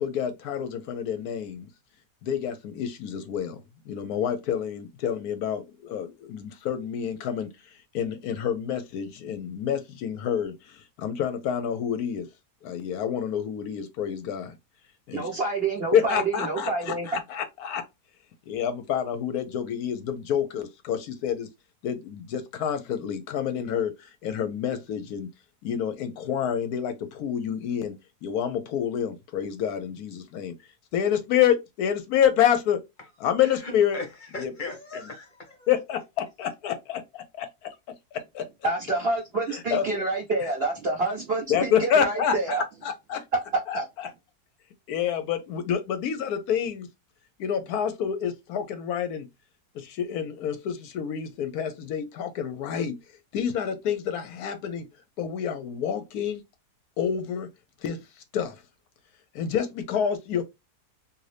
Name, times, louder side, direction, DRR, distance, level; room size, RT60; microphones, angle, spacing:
voice 1, 0.0-1.7 2.2-7.5 7.9-10.5 11.0-12.3 12.6-14.5 15.1-15.2 15.9-17.8 18.5-21.5 21.8-23.9 24.2-25.3 25.6-27.9 28.2-30.5 30.9-32.8 33.2-34.0 34.4-34.5 35.7-37.7 38.1-38.4 39.7-40.0 41.5-42.6 43.1-43.2 43.7-43.8 44.9-46.9 47.4-49.3 49.7-53.0 53.3-54.8 55.2-56.4 57.0-57.5 57.8-58.0 58.3-58.6 59.3-60.4, left 8 dB, 75° left, 1.0 m, -28 dB
voice 2, 15.1-17.2 38.6-42.6 43.5-43.9, right 3 dB, 50° right, 0.8 m, -28 dB
voice 3, 33.4-34.1 34.3-35.7, left 3 dB, 35° left, 1.0 m, -38 dB
2.7 x 2.6 x 3.2 m
omnidirectional pair, 1.7 m